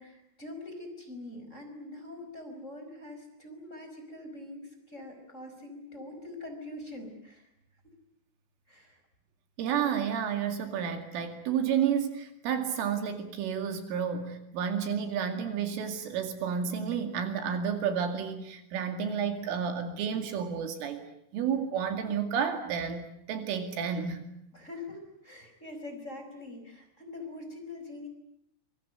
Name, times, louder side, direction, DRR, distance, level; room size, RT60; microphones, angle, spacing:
voice 1, 0.0-7.5 8.7-9.0 24.5-28.1, left 2 dB, 15° left, 5 dB, 4.9 m, -44 dB
voice 2, 9.6-21.0 21.3-24.2, right 7 dB, 80° right, 6 dB, 4.8 m, -31 dB
26.5 x 25.0 x 8.1 m, 0.77 s
omnidirectional pair, 5.7 m